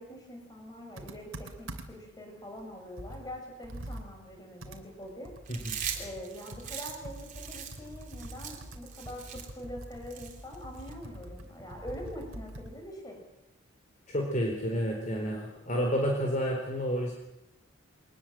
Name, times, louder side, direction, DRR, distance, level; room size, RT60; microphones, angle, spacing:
voice 1, 0.0-5.3 5.9-13.2, equal, 20° left, 2 dB, 6.4 m, -44 dB
Computer keyboard, 1.0-2.1 2.6-2.7 3.0-12.8, right 1 dB, 80° right, 3.0 m, -45 dB
Chewing mastication, 5.5-10.9, right 8 dB, 40° right, 3.5 m, -41 dB
voice 2, 14.1-17.1, equal, 40° left, 1 dB, 4.1 m, -30 dB
23.5 x 20.0 x 7.6 m, 0.86 s
head